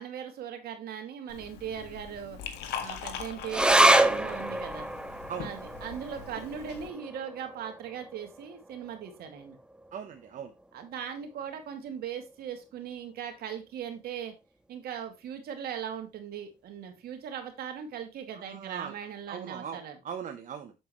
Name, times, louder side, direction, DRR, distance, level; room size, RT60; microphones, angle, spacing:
voice 1, 0.0-2.4 2.8-4.9 5.4-9.6 10.7-14.3 14.7-20.0, right 8 dB, 65° right, 5 dB, 2.3 m, -39 dB
Liquid, 1.3-6.9, left 8 dB, 80° left, 1.7 m, -41 dB
sound 1, 3.5-10.3 10.6-10.7 11.0-11.7 12.3-12.4, right 1 dB, 5° right, 0.8 m, -28 dB
voice 2, 9.9-10.5 18.3-19.0 19.3-20.7, right 7 dB, 50° right, 6 dB, 0.9 m, -40 dB
7.7 x 7.4 x 3.1 m, 0.25 s
cardioid pair, 110°, 17 cm